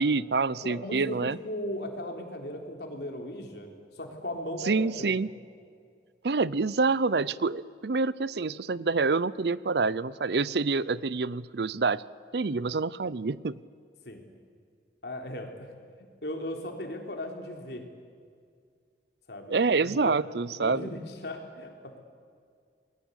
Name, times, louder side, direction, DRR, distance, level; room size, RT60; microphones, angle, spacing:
voice 1, 0.0-1.4 4.7-5.3 6.2-12.0 12.3-13.6 19.5-20.9, right 4 dB, 65° right, 19 dB, 0.6 m, -27 dB
voice 2, 0.6-3.7 3.9-5.1 14.1-14.2 15.0-15.7 16.2-17.8 19.3-19.5 19.8-20.1 20.6-22.0, left 1 dB, 65° left, 3 dB, 3.8 m, -37 dB
28.0 x 21.0 x 8.3 m, 2.1 s
head